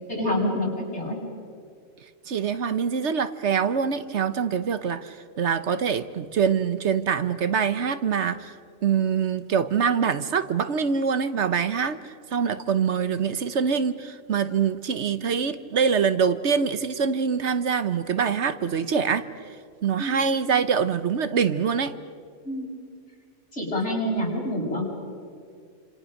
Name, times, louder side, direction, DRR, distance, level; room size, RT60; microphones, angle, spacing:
voice 1, 0.1-1.2 20.0-20.2 22.4-22.7 23.5-24.8, left 1 dB, 60° left, -3 dB, 6.5 m, -27 dB
voice 2, 2.3-8.5 8.8-19.2 19.8-21.9, right 6 dB, 65° right, 12 dB, 1.2 m, -24 dB
28.0 x 27.0 x 6.5 m, 2.2 s
omnidirectional pair, 1.3 m